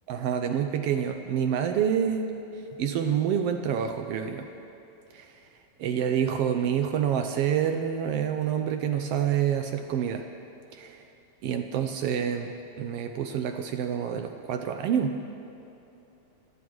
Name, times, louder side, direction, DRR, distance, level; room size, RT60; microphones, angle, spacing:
voice 1, 0.1-2.3 2.8-4.5 5.1-5.4 5.8-10.3 10.7-11.0 11.4-15.2, right 8 dB, 80° right, 6 dB, 1.4 m, -27 dB
29.5 x 10.5 x 3.1 m, 2.9 s
omnidirectional pair, 3.3 m